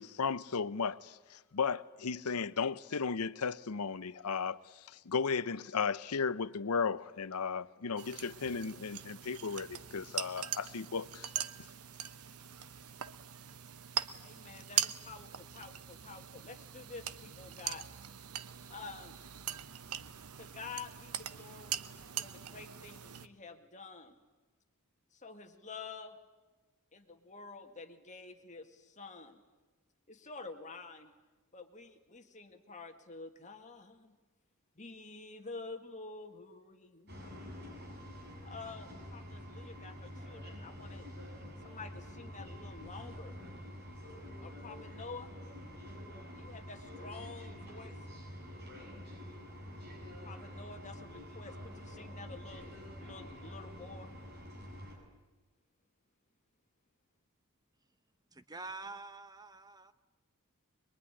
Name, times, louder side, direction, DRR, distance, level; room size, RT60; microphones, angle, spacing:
voice 1, 0.0-11.3, left 5 dB, 85° left, 0.8 m, -35 dB
sound 1, 8.0-23.3, right 10 dB, 80° right, 0.9 m, -41 dB
voice 2, 14.2-17.9 18.7-19.2 20.3-24.2 25.1-26.2 26.9-29.4 30.1-31.1 31.5-34.2 34.8-37.4 38.4-41.1 41.6-43.4 44.4-45.4 46.4-48.1 50.2-52.8 53.0-54.2, left 4 dB, 35° left, 1.9 m, -49 dB
sound 2, 37.1-55.0, equal, 50° right, 6.9 m, -47 dB
voice 3, 58.3-59.9, right 3 dB, 20° right, 1.0 m, -46 dB
23.0 x 22.5 x 9.9 m
head